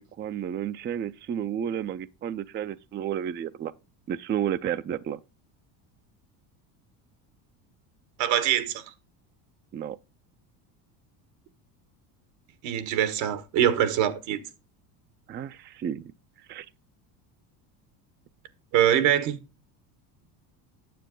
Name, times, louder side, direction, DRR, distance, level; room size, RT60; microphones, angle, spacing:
voice 1, 0.0-3.7 4.1-5.2 9.7-10.0 15.3-16.0 16.5-16.7, right 9 dB, 25° right, 0.4 m, -31 dB
voice 2, 8.2-8.8 12.6-14.4 18.7-19.4, right 10 dB, 75° right, 1.5 m, -23 dB
9.3 x 7.2 x 3.7 m
supercardioid pair, 95°, 45 cm